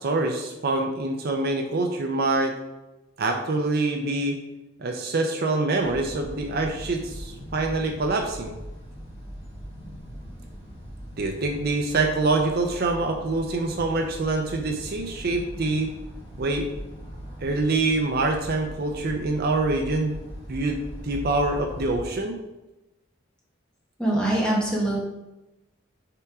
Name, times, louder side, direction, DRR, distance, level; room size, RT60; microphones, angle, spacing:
voice 1, 0.0-2.5 3.2-4.4 4.8-8.6 11.2-15.9 16.4-16.7 17.4-20.2 20.5-22.4, right 2 dB, 50° right, 4 dB, 0.5 m, -25 dB
sound 1, 5.8-22.0, equal, 30° left, 1.6 m, -40 dB
voice 2, 24.0-25.0, right 1 dB, 5° left, -5 dB, 1.4 m, -23 dB
5.8 x 3.5 x 4.8 m, 1.0 s
head